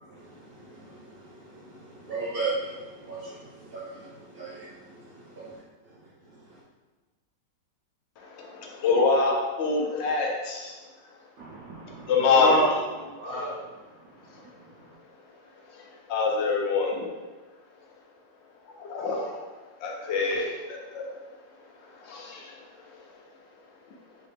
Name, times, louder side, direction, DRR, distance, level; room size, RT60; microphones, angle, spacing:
voice 1, 0.0-5.5 6.3-6.6, right 3 dB, 90° right, -6 dB, 0.5 m, -37 dB
voice 2, 8.2-10.8 12.1-12.5 13.2-13.3 16.1-17.1 18.8-19.3 19.8-21.2 22.0-22.5, left 4 dB, 65° left, 0 dB, 0.7 m, -25 dB
voice 3, 11.4-14.9, right 2 dB, 65° right, -6 dB, 0.9 m, -32 dB
4.0 x 3.1 x 3.2 m, 1.3 s
omnidirectional pair, 1.9 m